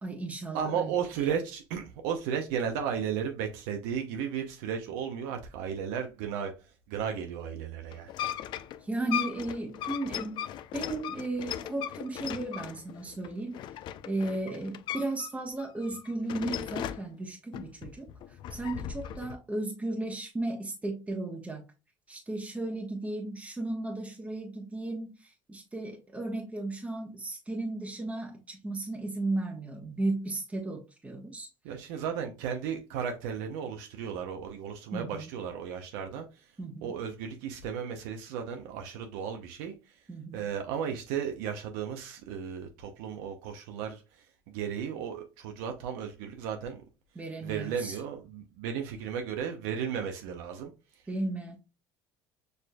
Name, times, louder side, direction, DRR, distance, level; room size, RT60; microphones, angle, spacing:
voice 1, 0.0-0.9 8.8-10.4 10.7-13.6 14.1-18.1 18.5-21.6 22.1-31.5 34.9-35.3 36.6-36.9 40.1-40.4 47.1-48.0 51.1-51.6, right 2 dB, 15° right, 1.0 m, -35 dB
voice 2, 0.5-6.5 6.9-8.1 31.6-36.3 36.8-39.7 40.3-44.0 44.5-46.8 47.4-50.7, right 7 dB, 85° right, 0.7 m, -34 dB
sound 1, 7.9-15.3 15.6-17.1 17.5-19.4, left 10 dB, 50° left, 0.4 m, -37 dB
6.5 x 2.5 x 2.3 m
supercardioid pair, 105°, 10 cm